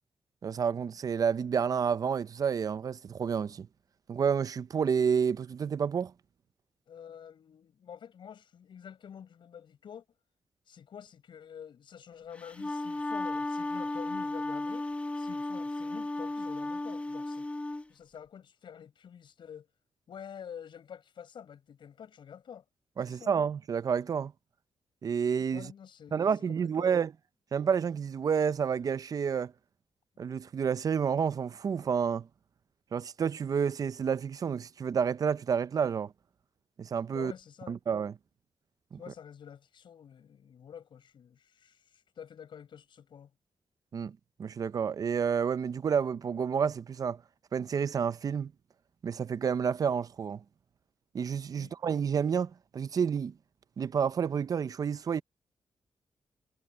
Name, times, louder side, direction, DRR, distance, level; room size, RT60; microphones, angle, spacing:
voice 1, 0.4-3.7 4.1-6.1 23.0-24.3 25.0-25.7 26.1-27.1 27.5-29.5 30.2-32.3 32.9-36.1 36.8-37.3 37.7-38.1 38.9-39.0 43.9-47.2 47.5-48.5 49.0-50.4 51.1-53.3 53.8-55.2, right 7 dB, 45° right, 0.5 m, -29 dB
voice 2, 6.9-10.0 10.7-14.9 15.2-17.5 17.9-19.7 20.1-22.6 23.0-23.3 25.5-27.0 37.1-37.8 39.0-43.3 51.6-51.7, left 8 dB, 65° left, 6.8 m, -48 dB
Wind instrument woodwind instrument, 12.4-17.8, left 2 dB, 15° left, 1.1 m, -34 dB
wide cardioid pair, 145°, 9 cm